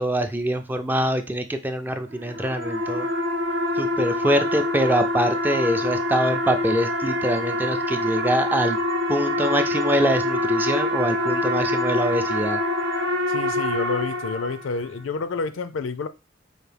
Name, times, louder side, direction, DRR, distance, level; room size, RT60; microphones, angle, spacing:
voice 1, 0.0-3.1 3.8-8.8 9.1-12.6, equal, 10° right, 7 dB, 0.3 m, -24 dB
sound 1, 2.1-14.9, left 1 dB, 75° right, 0.8 m, -25 dB
voice 2, 13.3-16.1, left 4 dB, 80° left, 12 dB, 0.4 m, -29 dB
4.9 x 2.6 x 3.3 m, 0.28 s
head